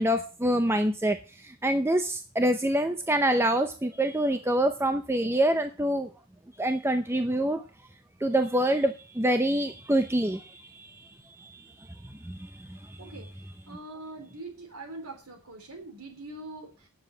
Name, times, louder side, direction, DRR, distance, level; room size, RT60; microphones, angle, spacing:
voice 1, 0.0-6.1 6.6-7.6 8.2-11.1 11.4-11.6 12.0-13.1, right 1 dB, 10° right, 7 dB, 0.6 m, -26 dB
voice 2, 13.7-16.9, right 2 dB, 85° right, 4 dB, 3.5 m, -43 dB
9.7 x 7.2 x 7.2 m, 0.34 s
head